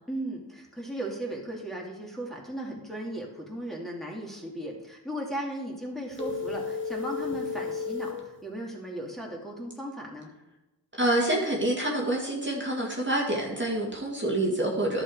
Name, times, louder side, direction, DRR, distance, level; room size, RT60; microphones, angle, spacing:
voice 1, 0.1-10.3, right 1 dB, ahead, -3 dB, 2.5 m, -36 dB
sound 1, 6.1-8.2, left 5 dB, 30° left, 1.8 m, -33 dB
voice 2, 10.9-15.0, right 1 dB, 25° right, -2 dB, 2.2 m, -27 dB
11.5 x 6.3 x 4.9 m, 1.0 s
cardioid pair, 40°, 42 cm